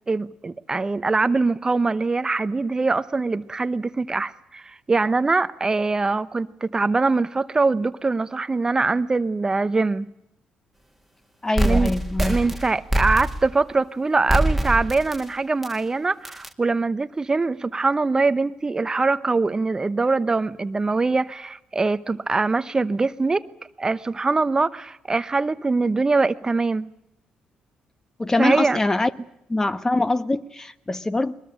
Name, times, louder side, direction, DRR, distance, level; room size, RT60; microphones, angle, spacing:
voice 1, 0.1-10.1 11.6-11.9 12.2-23.4 23.8-26.9 28.4-28.8, right 3 dB, 25° right, 0.9 m, -23 dB
voice 2, 11.4-12.4 28.2-29.1 29.5-31.3, left 2 dB, 20° left, 1.3 m, -23 dB
sound 1, 11.6-13.6 14.3-15.2 15.6-15.7 16.2-16.5, right 1 dB, ahead, 2.1 m, -23 dB
22.0 x 20.5 x 8.9 m
cardioid pair, 75°, 3 cm